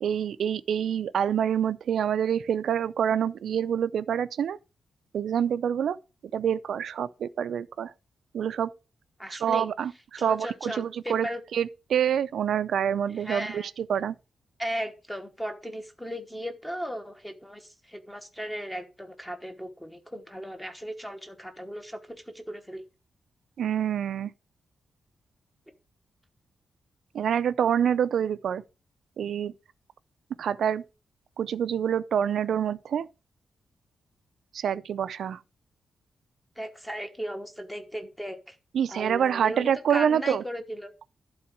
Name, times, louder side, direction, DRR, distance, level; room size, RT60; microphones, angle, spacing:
voice 1, 0.0-4.6 5.1-6.0 6.3-7.9 8.3-8.7 9.3-9.9 10.2-14.2 23.6-24.3 27.1-28.6 29.2-29.5 30.4-30.8 31.4-33.1 34.5-35.4 38.7-40.4, right 8 dB, 75° right, 0.5 m, -26 dB
voice 2, 9.2-9.7 10.2-11.4 13.1-13.7 14.6-22.8 36.6-38.6 38.9-40.9, equal, 5° left, 1.1 m, -36 dB
11.5 x 3.9 x 6.0 m
wide cardioid pair, 175°, 0 cm